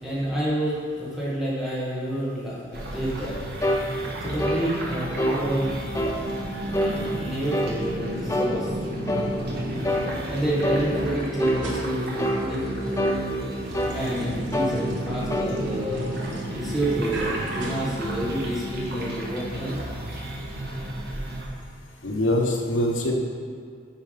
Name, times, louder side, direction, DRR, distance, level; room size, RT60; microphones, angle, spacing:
voice 1, 0.0-3.4 4.2-5.8 6.9-8.7 10.3-13.0 13.8-16.2 16.5-19.8, right 1 dB, ahead, -8 dB, 1.4 m, -29 dB
sound 1, 2.7-21.5, right 1 dB, 55° right, 1.2 m, -32 dB
sound 2, 3.6-3.9 4.4-4.6 5.2-5.4 5.9-6.2 6.7-7.0 7.5-7.8 8.3-8.6 9.1-9.3 9.8-10.1 10.6-10.9 11.4-11.6 12.2-12.5 13.0-13.2 13.7-14.0 14.5-14.8 15.3-15.5, left 1 dB, 15° left, 0.6 m, -25 dB
sound 3, 11.4-18.6, right 2 dB, 70° right, 1.1 m, -41 dB
voice 2, 22.0-23.1, left 1 dB, 75° left, 0 dB, 1.0 m, -23 dB
8.8 x 4.7 x 5.0 m, 2.2 s
head